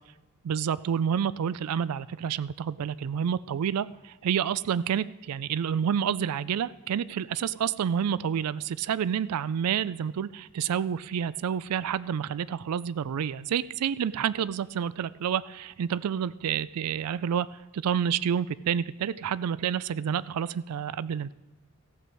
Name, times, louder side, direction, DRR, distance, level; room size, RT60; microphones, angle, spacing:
voice 1, 0.4-17.5 17.7-21.3, right 8 dB, 90° right, 18 dB, 0.4 m, -29 dB
15.0 x 7.9 x 4.6 m, 1.1 s
head